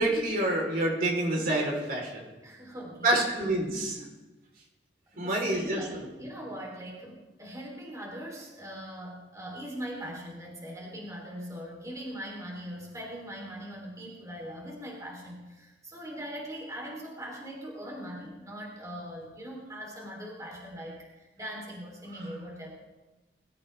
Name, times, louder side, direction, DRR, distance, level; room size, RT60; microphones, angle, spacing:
voice 1, 0.0-2.2 3.0-4.0 5.2-6.0, right 1 dB, 55° right, -1 dB, 3.8 m, -27 dB
voice 2, 2.4-3.2 5.1-22.8, equal, 20° right, -2 dB, 3.3 m, -41 dB
23.0 x 13.5 x 3.4 m, 1.1 s
head